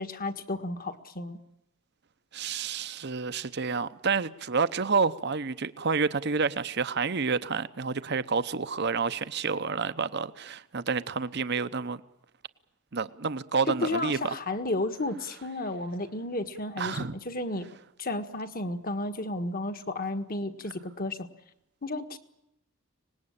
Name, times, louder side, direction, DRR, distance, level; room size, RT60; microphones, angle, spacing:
voice 1, 0.0-1.4 13.8-17.7 18.0-21.3 21.8-22.2, left 2 dB, 40° left, 1.5 m, -32 dB
voice 2, 2.3-12.0 12.9-14.3 16.8-17.1, right 5 dB, 50° right, 0.8 m, -29 dB
25.0 x 19.5 x 8.8 m
head